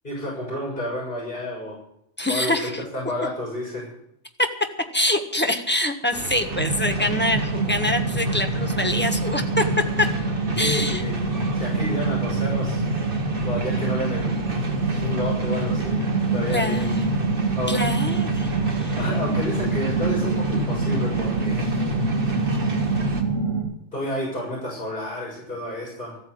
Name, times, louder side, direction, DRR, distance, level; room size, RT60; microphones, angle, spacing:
voice 1, 0.0-1.8 2.3-3.9 10.6-11.1 11.5-12.8 13.4-14.3 14.7-16.1 16.3-16.9 17.6-17.8 19.0-21.7 23.9-26.2, left 1 dB, 35° left, -5 dB, 6.7 m, -30 dB
voice 2, 2.2-2.8 4.4-4.5 4.9-9.6 10.0-10.1 10.6-11.0 16.5-17.1 17.7-19.0, left 1 dB, 10° left, 5 dB, 1.3 m, -25 dB
sound 1, 6.1-23.2, right 2 dB, 40° right, 1.8 m, -35 dB
sound 2, 6.5-23.6, right 3 dB, 60° right, 3.5 m, -25 dB
14.0 x 9.2 x 7.9 m, 0.77 s
omnidirectional pair, 1.4 m